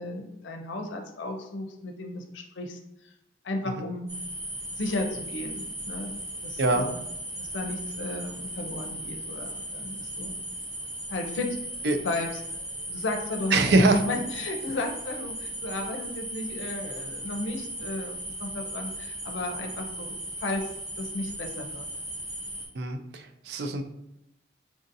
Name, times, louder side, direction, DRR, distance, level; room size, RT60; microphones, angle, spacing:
voice 1, 0.0-2.8 3.0-3.1 3.4-4.1 4.8-6.1 6.4-7.0 7.4-10.3 11.1-11.6 12.0-12.4 12.9-20.1 20.4-20.6 21.0-21.9, left 2 dB, 85° left, 3 dB, 0.5 m, -34 dB
sound 1, 4.1-22.7, right 1 dB, 20° right, 1.2 m, -37 dB
voice 2, 13.5-14.0 22.7-23.8, right 2 dB, 65° right, 6 dB, 0.4 m, -23 dB
4.7 x 2.7 x 2.5 m, 0.85 s
head